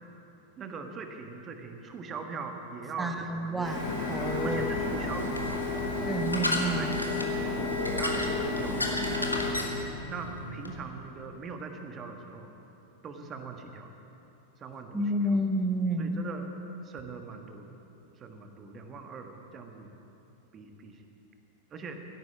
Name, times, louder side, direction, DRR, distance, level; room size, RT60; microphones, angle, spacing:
voice 1, 0.6-3.8 4.4-5.8 6.8-6.9 7.3-9.3 10.1-12.6 13.0-14.0 14.6-15.3 16.0-16.5 16.8-17.8 18.2-20.0 20.5-21.0 21.7-22.0, right 4 dB, 25° right, 5 dB, 1.4 m, -41 dB
voice 2, 3.0-4.7 6.1-7.0 14.9-16.2, right 1 dB, 10° right, 5 dB, 1.3 m, -30 dB
Printer, 3.6-9.5, left 3 dB, 65° left, 4.4 m, -32 dB
sound 1, 3.8-10.7, left 1 dB, 85° left, 1.3 m, -35 dB
12.5 x 11.0 x 8.5 m, 2.9 s
figure-of-eight pair, 90°, 0 cm